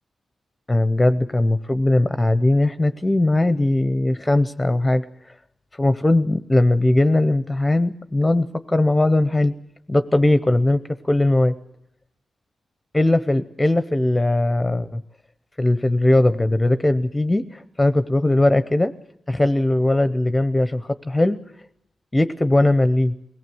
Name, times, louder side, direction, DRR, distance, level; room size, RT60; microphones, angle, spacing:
voice 1, 0.7-5.3 5.7-9.5 9.9-11.5 12.9-15.0 15.6-18.9 19.3-21.4 22.1-23.1, left 1 dB, 15° left, 12 dB, 0.7 m, -19 dB
23.0 x 17.5 x 7.8 m, 0.79 s
wide cardioid pair, 105°, 0 cm